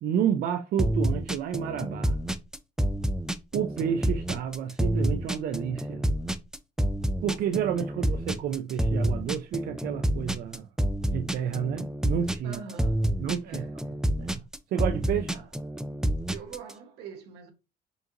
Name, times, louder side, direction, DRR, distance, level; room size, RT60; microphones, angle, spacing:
voice 1, 0.0-2.2 3.5-6.1 7.2-10.7 11.1-12.6 13.2-13.6 14.2-14.4 14.7-15.4, right 8 dB, 60° right, 0.5 m, -30 dB
sound 1, 0.8-16.7, right 1 dB, 5° right, 0.3 m, -28 dB
voice 2, 7.7-8.2 12.4-13.9 15.3-15.5 16.3-17.5, right 5 dB, 85° right, 1.1 m, -45 dB
5.2 x 2.5 x 2.8 m
cardioid pair, 110°, 17 cm